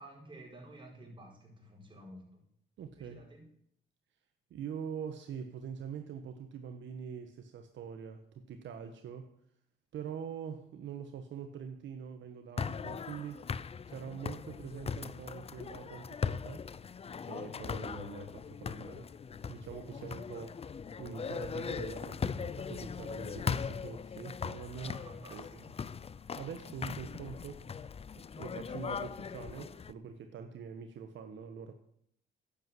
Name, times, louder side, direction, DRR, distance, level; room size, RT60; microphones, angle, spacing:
voice 1, 0.0-2.4 2.9-3.5 24.8-25.7, right 1 dB, 25° right, 0 dB, 5.0 m, -52 dB
voice 2, 2.8-3.2 4.5-9.3 9.9-13.5 13.9-16.7 17.2-19.1 19.5-20.6 21.0-25.0 25.3-25.5 26.3-27.6 28.3-31.7, right 7 dB, 70° right, 6 dB, 1.2 m, -44 dB
sound 1, 12.6-29.9, left 6 dB, 30° left, 0.5 m, -39 dB
10.5 x 8.6 x 7.7 m, 0.69 s
cardioid pair, 90°, 20 cm